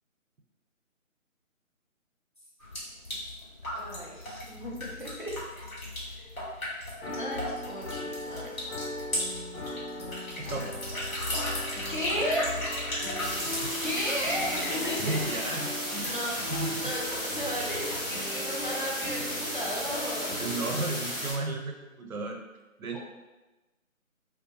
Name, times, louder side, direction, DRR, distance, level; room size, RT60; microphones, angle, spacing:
sound 1, 2.6-18.3, left 1 dB, 85° left, 1.2 m, -36 dB
voice 1, 3.7-5.7 6.2-6.5 7.2-8.5 11.9-12.5 13.8-15.4 16.1-16.3 16.8-17.0 17.2-20.3 22.9-23.0, equal, 40° left, -5 dB, 0.4 m, -34 dB
sound 2, 7.0-20.7, left 1 dB, 55° left, 0.9 m, -40 dB
voice 2, 10.4-10.7 13.4-13.7 15.0-16.9 20.4-22.4 22.8-23.0, right 2 dB, 90° right, 2 dB, 0.6 m, -34 dB
sound 3, 13.2-21.3, equal, ahead, 0.8 m, -34 dB
2.2 x 2.1 x 2.7 m, 1.1 s
figure-of-eight pair, 150°, 41 cm